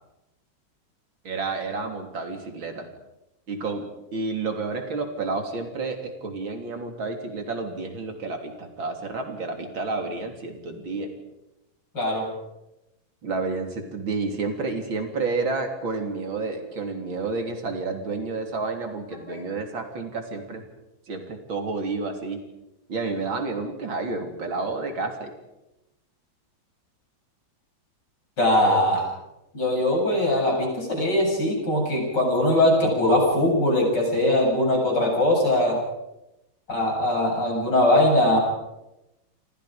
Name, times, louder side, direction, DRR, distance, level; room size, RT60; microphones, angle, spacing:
voice 1, 1.2-2.9 3.5-3.9 4.1-11.1 13.2-20.6 21.1-22.4 22.9-25.4 28.6-28.9, right 3 dB, 75° right, 4 dB, 4.1 m, -30 dB
voice 2, 11.9-12.3 19.3-19.4 28.4-29.0 29.5-35.8 36.7-38.4, left 1 dB, 55° left, 0 dB, 8.9 m, -21 dB
29.0 x 25.5 x 5.2 m, 0.93 s
omnidirectional pair, 2.2 m